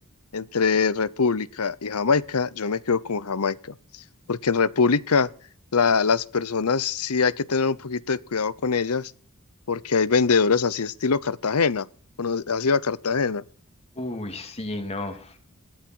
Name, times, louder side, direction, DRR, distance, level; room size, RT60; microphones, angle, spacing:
voice 1, 0.3-3.7 4.3-5.3 5.7-9.1 9.7-11.9 12.2-13.4, left 5 dB, 85° left, 0.8 m, -23 dB
voice 2, 14.0-15.4, left 2 dB, 30° left, 2.9 m, -33 dB
18.5 x 13.0 x 4.6 m
head